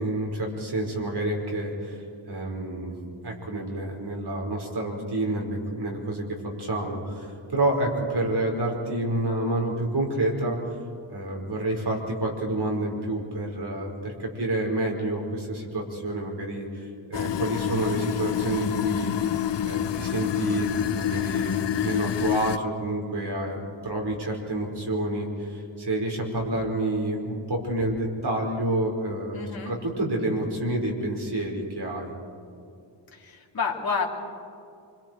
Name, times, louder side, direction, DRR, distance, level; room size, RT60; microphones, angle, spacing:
voice 1, 0.0-2.0 2.3-2.9 3.2-6.2 6.6-10.7 11.1-19.1 19.6-32.1, right 1 dB, 60° right, 0 dB, 4.9 m, -28 dB
sound 1, 17.1-22.6, left 11 dB, 65° left, 0.7 m, -27 dB
voice 2, 29.3-29.7 33.1-34.1, left 5 dB, 50° left, -1 dB, 2.8 m, -29 dB
26.0 x 25.5 x 4.7 m, 2.5 s
wide cardioid pair, 95°, 46 cm